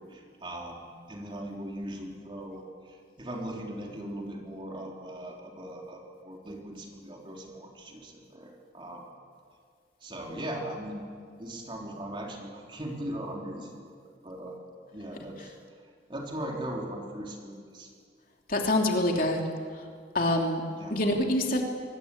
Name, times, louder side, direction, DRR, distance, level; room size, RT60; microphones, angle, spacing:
voice 1, 0.0-2.6 3.2-9.1 10.0-11.0 11.4-13.8 14.2-14.6 14.9-15.5 16.1-17.9 20.8-21.0, right 1 dB, 30° right, 0 dB, 3.7 m, -39 dB
voice 2, 18.5-19.4 20.1-20.6 20.9-21.6, left 1 dB, 50° left, 1 dB, 2.9 m, -25 dB
24.5 x 20.0 x 8.7 m, 2.1 s
head